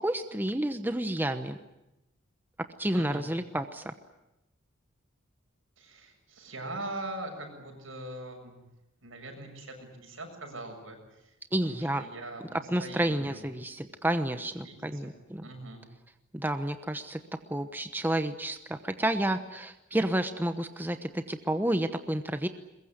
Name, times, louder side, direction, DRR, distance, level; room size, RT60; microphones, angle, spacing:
voice 1, 0.0-1.6 2.8-3.9 11.5-12.0 12.7-15.4 16.3-17.2 17.5-22.5, right 1 dB, 10° right, 8 dB, 1.0 m, -30 dB
voice 2, 2.9-3.2 5.8-8.7 9.0-11.4 11.6-13.5 14.6-15.1 15.4-15.9, right 2 dB, 85° right, 3 dB, 7.5 m, -42 dB
22.0 x 22.0 x 9.8 m, 0.91 s
head